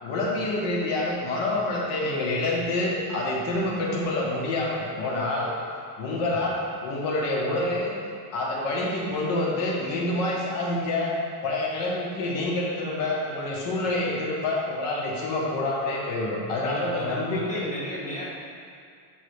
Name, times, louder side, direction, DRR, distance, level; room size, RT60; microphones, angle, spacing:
voice 1, 0.0-5.5 6.0-7.9 8.3-11.2 11.4-17.6, left 2 dB, 65° left, -3 dB, 1.4 m, -27 dB
voice 2, 6.2-6.5 16.6-18.3, left 1 dB, 15° left, -8 dB, 1.4 m, -35 dB
7.9 x 3.8 x 5.0 m, 2.3 s
cardioid pair, 170°, 45 cm